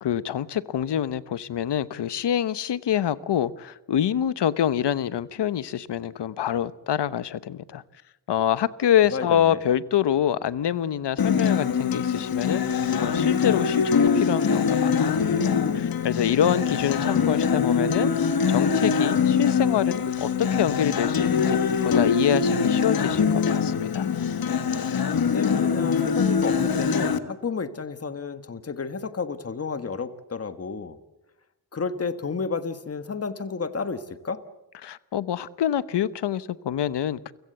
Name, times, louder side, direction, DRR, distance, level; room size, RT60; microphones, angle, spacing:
voice 1, 0.0-7.8 8.3-15.5 15.7-18.1 18.5-24.1 34.8-37.3, left 10 dB, 80° left, 16 dB, 1.0 m, -26 dB
voice 2, 9.1-9.6 25.1-31.0 31.7-34.4, left 5 dB, 35° left, 11 dB, 1.6 m, -31 dB
Acoustic guitar, 11.2-27.2, left 6 dB, 60° left, 1.5 m, -23 dB
29.5 x 16.5 x 8.1 m, 0.95 s
wide cardioid pair, 105°, 41 cm